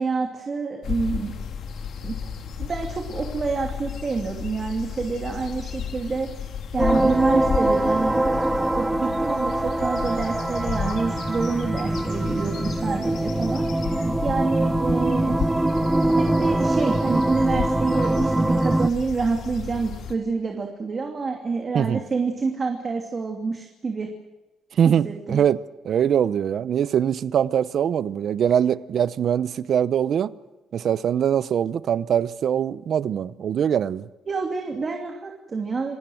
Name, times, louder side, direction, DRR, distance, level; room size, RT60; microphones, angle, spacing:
voice 1, 0.0-1.3 2.0-2.3 2.6-6.3 6.7-8.2 8.6-13.7 14.2-15.4 16.2-24.1 24.9-25.4 34.3-36.0, right 4 dB, 35° right, 2.6 m, -27 dB
sound 1, 0.8-20.1, left 7 dB, 65° left, 2.6 m, -33 dB
sound 2, 6.8-18.9, right 1 dB, 10° right, 0.8 m, -23 dB
voice 2, 24.8-25.6 25.8-30.3 30.7-34.1, right 9 dB, 55° right, 0.8 m, -22 dB
27.5 x 18.0 x 7.8 m
cardioid pair, 115°, 0 cm